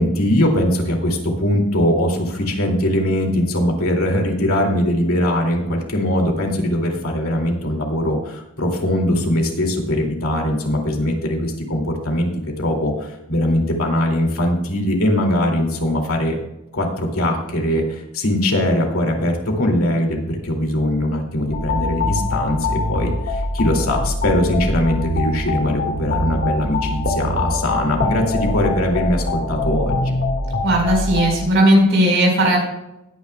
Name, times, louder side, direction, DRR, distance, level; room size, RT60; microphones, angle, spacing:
voice 1, 0.0-12.3 12.6-16.4 16.7-30.2, left 1 dB, 75° left, 1 dB, 2.5 m, -21 dB
sound 1, 21.5-31.4, left 2 dB, 50° left, 1.8 m, -23 dB
voice 2, 30.6-32.6, right 1 dB, 60° right, 0 dB, 4.6 m, -16 dB
19.5 x 9.6 x 2.3 m, 0.91 s
head